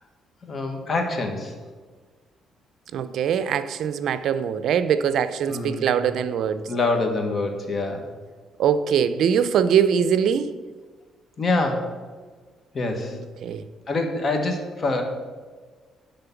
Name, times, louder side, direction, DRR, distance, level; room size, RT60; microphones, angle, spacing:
voice 1, 0.4-1.5 5.5-5.9 6.7-8.0 11.4-11.9 12.7-13.2 13.9-15.0, left 2 dB, 35° left, 4 dB, 1.4 m, -25 dB
voice 2, 2.9-6.6 8.6-10.5 13.4-13.6, right 8 dB, 70° right, 13 dB, 0.5 m, -22 dB
10.5 x 3.8 x 7.0 m, 1.4 s
cardioid pair, 110°, 0 cm